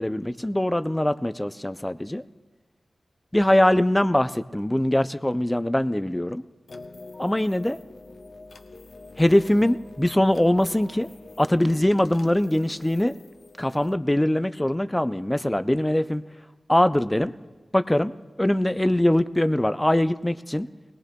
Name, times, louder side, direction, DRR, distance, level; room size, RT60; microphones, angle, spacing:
voice 1, 0.0-2.2 3.3-6.4 7.2-7.8 9.2-11.1 11.4-13.1 13.6-16.2 16.7-17.3 17.7-18.1 18.4-20.7, left 1 dB, 10° left, 12 dB, 0.3 m, -22 dB
sound 1, 6.7-13.9, left 3 dB, 65° left, 0.6 m, -46 dB
21.5 x 18.0 x 2.2 m, 1.3 s
wide cardioid pair, 100°, 0 cm